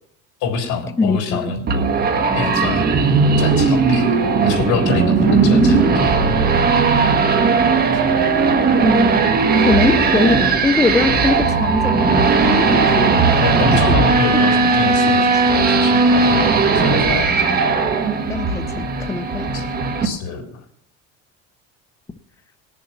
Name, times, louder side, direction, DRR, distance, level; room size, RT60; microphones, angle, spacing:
voice 1, 0.4-1.7 2.3-3.0 3.4-4.1 4.4-6.2 13.4-17.3 19.5-19.7 20.0-20.6, left 4 dB, 70° left, 3.7 m, -25 dB
voice 2, 1.0-1.5 8.8-9.2 9.5-13.3 13.7-14.0 15.1-15.2 15.5-16.4 18.3-19.5, left 4 dB, 10° left, 0.5 m, -22 dB
sound 1, 1.7-20.1, right 4 dB, 30° right, 1.5 m, -16 dB
19.5 x 7.1 x 5.8 m
cardioid pair, 145°, 30 cm